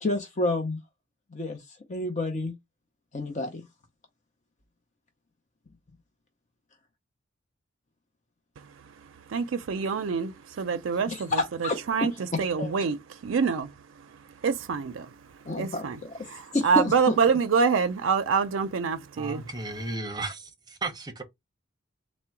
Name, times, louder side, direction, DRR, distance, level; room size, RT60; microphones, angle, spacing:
voice 1, 0.0-0.8 1.3-2.6 3.1-3.7 11.1-12.8 15.4-16.1 16.5-17.2, left 2 dB, 35° left, 0.7 m, -29 dB
voice 2, 8.6-11.3 11.6-12.1 12.4-15.2 15.6-16.0 16.3-19.5, right 5 dB, 70° right, 0.4 m, -27 dB
voice 3, 19.2-21.2, right 2 dB, 20° right, 0.7 m, -34 dB
3.7 x 2.1 x 4.4 m
head